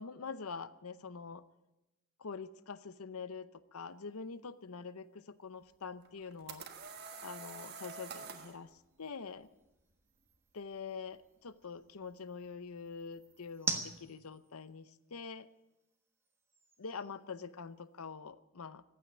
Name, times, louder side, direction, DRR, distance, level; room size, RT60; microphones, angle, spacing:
voice 1, 0.0-1.4 2.2-6.7 7.2-9.5 10.5-15.5 16.8-18.8, left 5 dB, 85° left, 15 dB, 0.7 m, -45 dB
sound 1, 3.9-18.1, right 3 dB, 10° right, 1.3 m, -48 dB
sound 2, 6.0-8.6, right 5 dB, 45° right, 1.4 m, -47 dB
15.5 x 9.4 x 9.9 m, 0.98 s
head